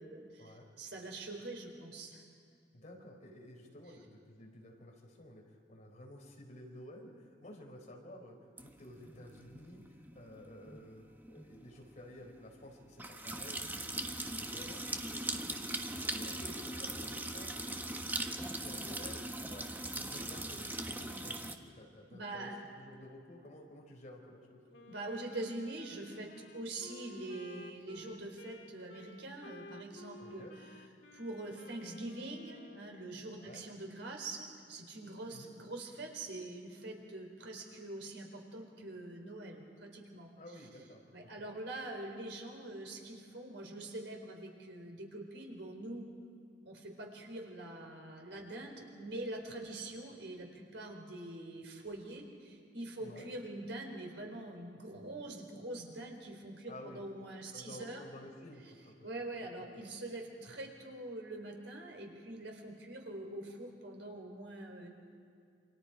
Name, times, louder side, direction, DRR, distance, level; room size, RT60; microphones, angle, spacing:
voice 1, 0.0-2.2 22.1-22.5 24.9-30.5 31.1-40.3 41.1-46.1 46.7-58.0 59.0-64.9, right 2 dB, 90° right, 2 dB, 4.3 m, -44 dB
voice 2, 2.7-14.8 15.1-18.0 18.3-19.6 19.9-24.6 30.2-30.5 33.3-33.6 35.3-35.5 40.4-41.5 53.0-53.3 56.7-57.0 57.5-59.0, left 1 dB, 45° left, 0 dB, 4.3 m, -53 dB
sound 1, 8.6-21.6, right 1 dB, 10° right, 1.2 m, -40 dB
Wind instrument woodwind instrument, 24.7-33.2, left 2 dB, 75° left, 1.7 m, -54 dB
28.0 x 26.0 x 5.0 m, 2.4 s
head